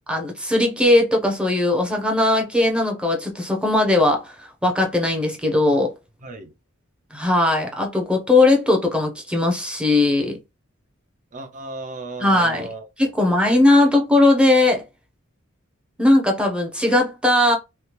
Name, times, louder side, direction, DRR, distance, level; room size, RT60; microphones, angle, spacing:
voice 1, 0.1-4.3 4.6-5.9 7.1-10.3 12.2-12.7 13.0-14.8 16.0-17.6, left 2 dB, 5° right, 0.7 m, -18 dB
voice 2, 6.2-6.5 11.3-12.9 13.2-13.9, right 2 dB, 40° right, 0.6 m, -36 dB
3.3 x 2.1 x 2.9 m
head